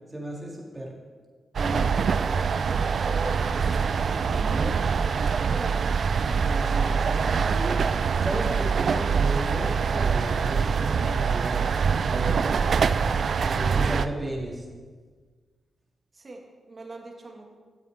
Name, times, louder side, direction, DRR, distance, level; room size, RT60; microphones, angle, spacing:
voice 1, 0.1-0.9 1.6-2.1 4.4-4.7 6.4-7.8 8.2-11.6 12.0-12.6 13.4-14.6, right 1 dB, 20° right, -3 dB, 3.0 m, -34 dB
sound 1, 1.5-14.1, right 6 dB, 65° right, 0.4 m, -24 dB
voice 2, 2.7-5.9 16.1-17.4, right 2 dB, 40° right, 1 dB, 1.9 m, -40 dB
13.5 x 7.8 x 3.6 m, 1.5 s
cardioid pair, 65°, 0 cm